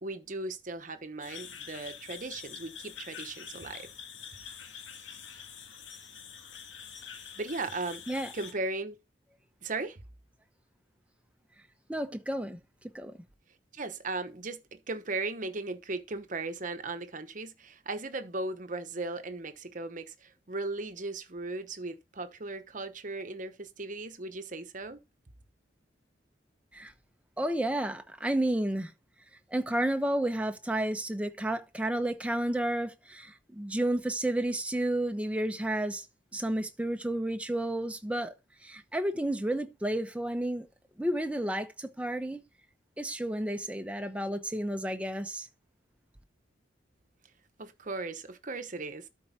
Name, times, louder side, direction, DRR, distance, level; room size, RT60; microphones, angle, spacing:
voice 1, 0.0-3.9 7.4-8.0 8.3-9.0 9.6-10.0 13.7-25.0 47.6-49.1, right 3 dB, 45° right, 1.0 m, -37 dB
sound 1, 1.2-8.5, left 7 dB, 85° left, 1.7 m, -46 dB
voice 2, 11.9-12.6 12.9-13.2 26.7-26.9 27.4-28.9 29.5-36.1 36.3-38.3 38.6-40.7 41.0-42.4 43.0-45.5, right 1 dB, 5° right, 0.9 m, -31 dB
12.5 x 4.6 x 4.3 m
head